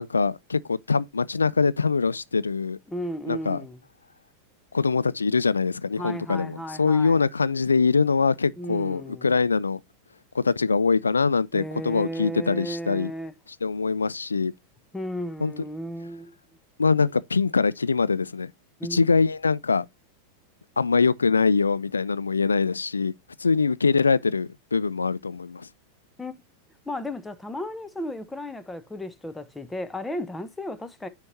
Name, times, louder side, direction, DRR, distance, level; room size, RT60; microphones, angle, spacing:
voice 1, 0.0-2.8 3.3-3.6 4.7-9.8 10.3-13.1 13.6-14.5 15.4-15.5 16.8-18.5 18.9-19.9 20.8-23.1 23.4-25.7, left 4 dB, 75° left, 0.3 m, -23 dB
voice 2, 2.9-3.8 6.0-7.2 8.6-9.3 11.5-13.3 14.9-16.3 18.8-19.0 26.2-26.4 26.9-31.1, equal, 10° left, 0.8 m, -34 dB
9.6 x 4.4 x 2.6 m
figure-of-eight pair, 90°, 0 cm